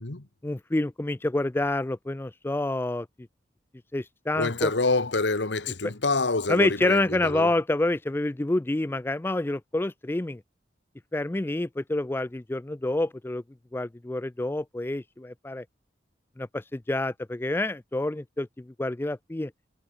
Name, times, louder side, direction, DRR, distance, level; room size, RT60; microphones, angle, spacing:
voice 1, 0.4-3.1 3.9-4.7 6.5-10.4 11.1-13.4 13.7-15.6 16.4-19.5, left 2 dB, 10° left, 0.4 m, -28 dB
voice 2, 4.3-7.5, left 3 dB, 80° left, 1.6 m, -26 dB
head